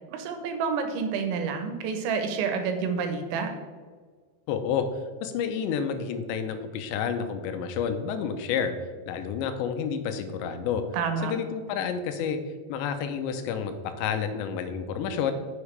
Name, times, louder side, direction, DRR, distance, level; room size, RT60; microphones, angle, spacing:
voice 1, 0.1-3.5 10.9-11.3, right 5 dB, 85° right, 6 dB, 3.3 m, -29 dB
voice 2, 4.5-4.9 5.2-8.7 9.1-10.8 11.2-12.4 12.7-15.3, left 7 dB, 85° left, 8 dB, 2.9 m, -29 dB
9.8 x 7.2 x 3.4 m, 1.5 s
omnidirectional pair, 5.2 m